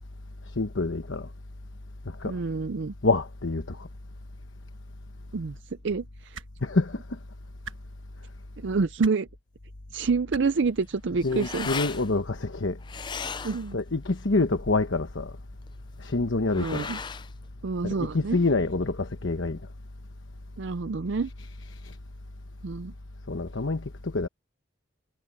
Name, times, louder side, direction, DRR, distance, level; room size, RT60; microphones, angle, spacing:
voice 1, 0.5-1.3 2.0-2.4 3.0-3.9 6.6-7.2 11.2-12.8 13.7-15.3 16.0-16.9 17.8-19.6 21.8-22.0 23.3-24.3, left 3 dB, 75° left, 1.1 m, -27 dB
voice 2, 2.2-2.9 5.3-6.4 8.6-9.3 9.9-11.7 13.4-13.8 16.6-17.0 17.6-18.4 20.6-21.3 22.6-22.9, right 4 dB, 65° right, 0.5 m, -28 dB
sound 1, 6.3-6.5 7.6-7.8 9.0-9.2 10.3-10.4 11.7-11.8, right 4 dB, 85° right, 1.5 m, -39 dB
sound 2, 10.6-18.5, left 5 dB, 25° left, 0.4 m, -39 dB
head